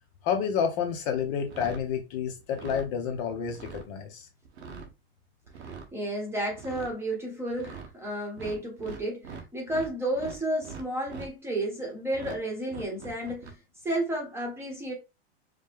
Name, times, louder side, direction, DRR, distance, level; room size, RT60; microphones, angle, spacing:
voice 1, 0.2-4.3, left 7 dB, 35° left, 0.8 m, -29 dB
sound 1, 1.4-1.9 2.4-2.9 3.4-3.9 4.4-4.9 5.4-5.9 6.5-6.9 7.5-7.9 8.4-9.9 10.1-11.3 12.1-12.4 12.7-13.5, right 5 dB, 75° right, 1.3 m, -42 dB
voice 2, 5.9-13.5 13.8-14.9, right 1 dB, 5° right, 1.1 m, -32 dB
5.0 x 2.2 x 3.4 m
supercardioid pair, 150°, 33 cm